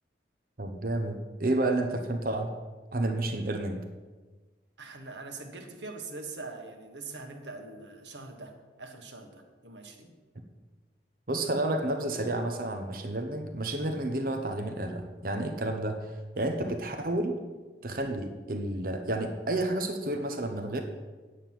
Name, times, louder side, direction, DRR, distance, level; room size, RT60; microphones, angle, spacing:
voice 1, 0.6-2.5 2.9-3.8 11.3-17.4 17.8-20.8, right 1 dB, 50° right, 5 dB, 0.9 m, -30 dB
voice 2, 4.8-8.5 8.8-10.2, right 3 dB, 80° right, 4 dB, 1.6 m, -43 dB
9.1 x 6.6 x 7.7 m, 1.3 s
head